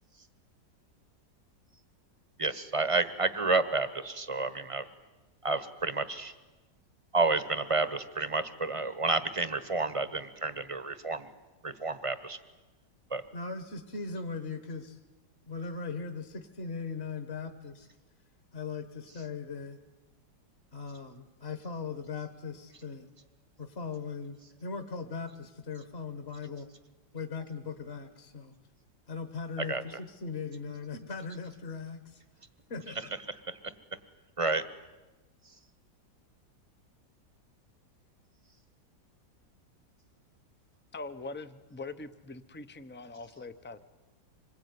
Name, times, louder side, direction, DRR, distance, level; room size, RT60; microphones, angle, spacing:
voice 1, 2.4-4.9 5.4-6.3 7.1-11.3 11.6-12.4 13.1-13.2 29.6-29.8 33.5-33.6 34.4-34.6, right 3 dB, 25° right, 13 dB, 0.9 m, -30 dB
voice 2, 13.3-15.0 15.5-17.9 18.5-19.8 20.7-23.1 23.6-26.7 27.1-28.5 29.1-32.2 32.7-33.1, left 5 dB, 40° left, 8 dB, 1.5 m, -39 dB
voice 3, 40.9-43.8, left 3 dB, 15° left, 11 dB, 0.4 m, -42 dB
26.0 x 21.5 x 9.6 m, 1.2 s
omnidirectional pair, 1.9 m